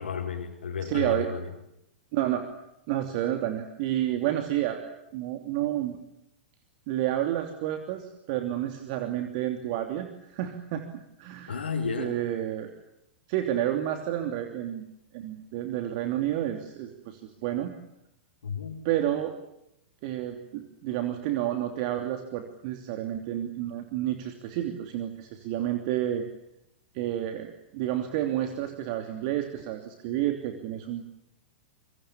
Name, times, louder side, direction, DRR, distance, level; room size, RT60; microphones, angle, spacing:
voice 1, 0.0-1.5 11.5-12.2 18.4-18.8, left 5 dB, 70° left, -2 dB, 4.4 m, -32 dB
voice 2, 0.8-1.3 2.1-2.4 2.9-6.0 6.9-10.8 11.2-11.7 12.0-12.7 13.3-14.8 15.1-17.7 18.8-19.3 20.0-26.3 26.9-31.1, right 12 dB, 45° right, 5 dB, 3.0 m, -30 dB
27.0 x 24.0 x 7.4 m, 0.84 s
figure-of-eight pair, 100°, 6 cm